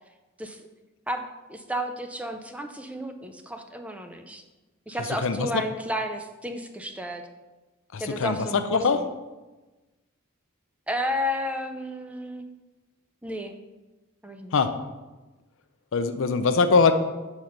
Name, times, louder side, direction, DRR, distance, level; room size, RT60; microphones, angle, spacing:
voice 1, 1.1-4.4 4.9-7.2 8.0-9.1 10.9-12.5 13.2-13.5 14.2-14.5, equal, 5° right, 6 dB, 0.5 m, -32 dB
voice 2, 7.9-8.4 8.7-9.0 14.5-14.7 15.9-16.9, left 4 dB, 65° left, 9 dB, 0.5 m, -22 dB
6.0 x 5.4 x 5.0 m, 1.2 s
head